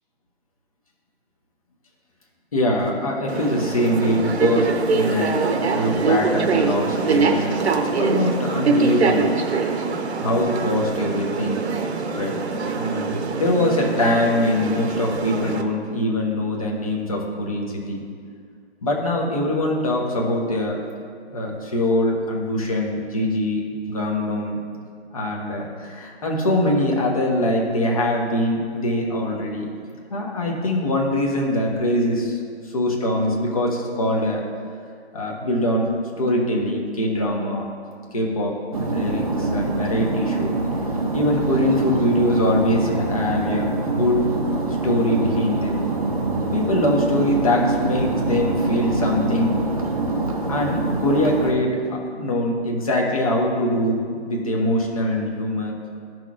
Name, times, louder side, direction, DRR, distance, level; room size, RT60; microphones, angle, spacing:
voice 1, 2.5-5.4 5.7-9.3 10.2-11.6 12.2-12.3 12.8-18.0 18.8-20.8 21.3-23.6 23.9-24.6 25.1-29.7 30.1-32.4 32.7-34.4 35.1-37.7 38.1-38.5 38.8-40.6 41.1-44.3 44.8-45.8 46.5-49.6 50.5-55.7, left 1 dB, 35° left, -1 dB, 1.0 m, -23 dB
sound 1, 3.3-15.6, right 4 dB, 75° right, 0.8 m, -23 dB
sound 2, 38.7-51.5, right 2 dB, 35° right, 0.7 m, -25 dB
14.0 x 6.1 x 2.4 m, 2.1 s
hypercardioid pair, 180°, 33 cm